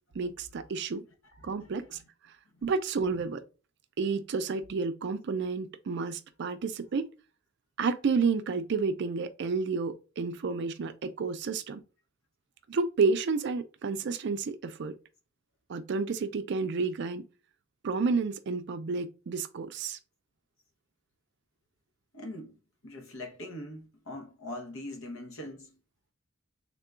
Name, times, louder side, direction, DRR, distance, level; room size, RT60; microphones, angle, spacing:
voice 1, 0.1-1.0 1.4-2.0 2.6-3.4 4.0-7.0 7.8-11.8 12.7-14.9 15.7-17.2 17.8-20.0, right 4 dB, 60° right, 0.4 m, -30 dB
voice 2, 1.2-2.0 22.1-25.8, left 1 dB, 85° left, 0.9 m, -43 dB
3.6 x 2.3 x 3.7 m
head